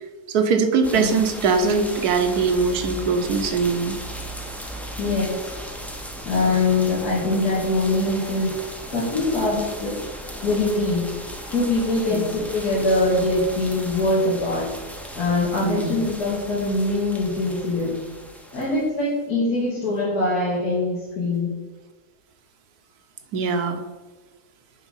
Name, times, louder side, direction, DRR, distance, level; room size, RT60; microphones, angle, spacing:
voice 1, 0.3-4.0 12.1-12.2 15.6-15.9 23.3-23.8, right 5 dB, 75° right, 6 dB, 1.3 m, -21 dB
sound 1, 0.8-18.9, equal, ahead, 0.3 m, -36 dB
voice 2, 5.0-5.6 6.2-8.6 8.9-10.1 10.4-11.1 11.5-14.7 15.1-18.0 18.5-21.5, left 2 dB, 75° left, -7 dB, 2.2 m, -23 dB
7.1 x 4.9 x 5.5 m, 1.3 s
omnidirectional pair, 1.7 m